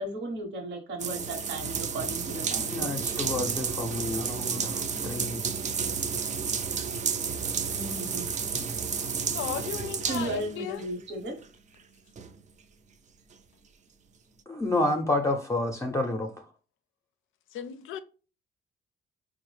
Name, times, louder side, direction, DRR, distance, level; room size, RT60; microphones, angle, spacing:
voice 1, 0.0-2.9 7.7-8.2 10.1-11.3, right 1 dB, 70° right, 1.0 m, -35 dB
sound 1, 1.0-10.9 11.4-11.5 12.2-12.3, right 6 dB, 35° right, 0.4 m, -31 dB
voice 2, 2.5-5.4 8.5-8.7 14.5-16.4, left 2 dB, 15° left, 0.5 m, -30 dB
voice 3, 9.3-10.9 17.5-18.0, left 10 dB, 85° left, 0.4 m, -36 dB
3.9 x 2.0 x 3.2 m
cardioid pair, 90°, 20 cm